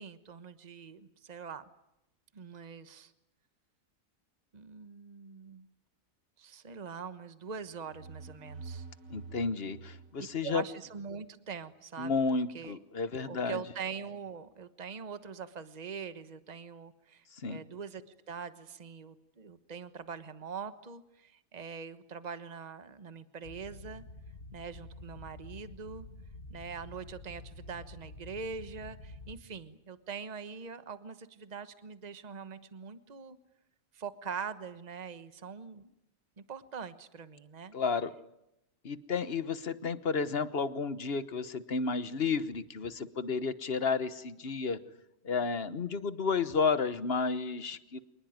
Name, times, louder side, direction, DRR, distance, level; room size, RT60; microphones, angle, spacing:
voice 1, 0.0-1.6 2.3-3.1 4.5-5.7 6.4-8.8 10.4-12.1 12.5-12.8 13.3-24.0 24.5-26.1 26.5-33.4 33.9-35.9 36.4-37.7, right 6 dB, 30° right, 12 dB, 1.3 m, -43 dB
sound 1, 7.6-11.2, right 4 dB, 80° right, 2.1 m, -48 dB
voice 2, 9.1-10.6 12.0-13.6 17.3-17.6 37.7-38.1 38.8-44.8 45.2-48.0, left 5 dB, 45° left, 13 dB, 1.4 m, -32 dB
sound 2, 23.4-29.4, left 2 dB, 70° left, 2.6 m, -48 dB
27.0 x 20.0 x 9.5 m, 0.87 s
omnidirectional pair, 1.4 m